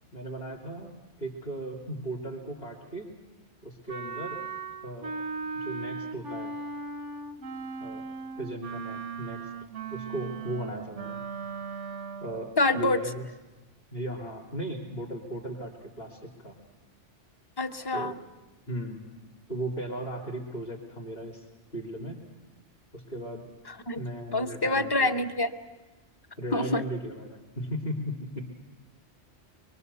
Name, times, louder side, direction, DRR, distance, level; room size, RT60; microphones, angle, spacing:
voice 1, 0.1-0.9 1.2-3.1 3.6-4.4 4.8-5.1 5.5-6.5 7.8-8.0 8.4-9.5 9.9-11.2 12.2-13.2 13.9-16.5 17.9-18.1 18.7-19.0 19.5-21.4 21.7-22.2 22.9-23.4 23.9-25.3 26.4-28.5, right 1 dB, 50° left, -5 dB, 3.1 m, -36 dB
Wind instrument woodwind instrument, 3.9-12.5, right 4 dB, 90° right, 1.3 m, -38 dB
voice 2, 12.6-13.0 17.6-18.2 23.9-24.0 24.3-25.5 26.5-26.8, left 2 dB, 20° left, 8 dB, 0.8 m, -26 dB
24.5 x 23.0 x 6.9 m, 1.2 s
omnidirectional pair, 1.2 m